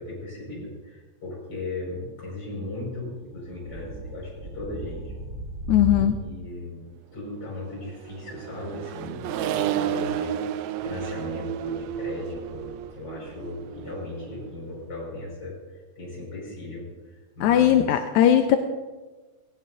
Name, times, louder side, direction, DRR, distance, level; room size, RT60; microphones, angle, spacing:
voice 1, 0.0-5.1 5.9-6.8 7.1-10.4 10.8-18.0, left 2 dB, 35° left, -4 dB, 6.2 m, -37 dB
sound 1, 3.3-6.2, equal, 35° right, 0.7 m, -35 dB
voice 2, 5.7-6.2 17.4-18.6, left 10 dB, 85° left, 7 dB, 2.1 m, -18 dB
Accelerating revving vroom, 7.8-14.5, right 10 dB, 80° right, 1.7 m, -32 dB
18.5 x 16.5 x 2.7 m, 1.2 s
omnidirectional pair, 3.4 m